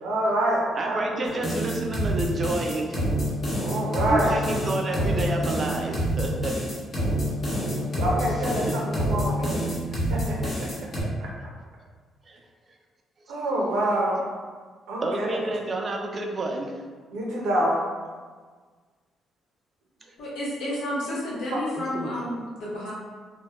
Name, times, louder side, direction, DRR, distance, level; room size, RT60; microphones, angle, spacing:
voice 1, 0.0-1.2 3.6-4.3 8.0-9.7 10.1-10.3 13.3-14.2 14.9-15.4 17.1-17.8, right 1 dB, 90° right, -3 dB, 0.6 m, -26 dB
voice 2, 0.7-3.0 4.1-6.5 8.7-8.8 12.3-12.4 13.2-13.3 15.0-16.7 21.7-22.2, right 2 dB, 40° right, 2 dB, 0.3 m, -30 dB
sound 1, 1.3-11.0, equal, 45° left, 0.8 m, -27 dB
voice 3, 20.2-22.9, left 1 dB, 85° left, -7 dB, 0.8 m, -31 dB
2.2 x 2.1 x 2.9 m, 1.5 s
cardioid pair, 90°, 0 cm